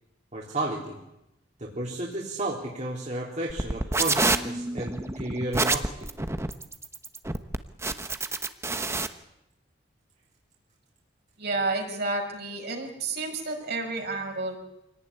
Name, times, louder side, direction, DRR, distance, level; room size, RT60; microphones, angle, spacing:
voice 1, 0.3-1.0 1.6-5.9, right 2 dB, 40° right, -3 dB, 3.7 m, -32 dB
sound 1, 3.5-9.1, right 2 dB, 15° right, 1.1 m, -27 dB
voice 2, 11.4-14.6, right 3 dB, 60° right, 2 dB, 5.9 m, -30 dB
26.0 x 18.0 x 9.9 m, 0.90 s
head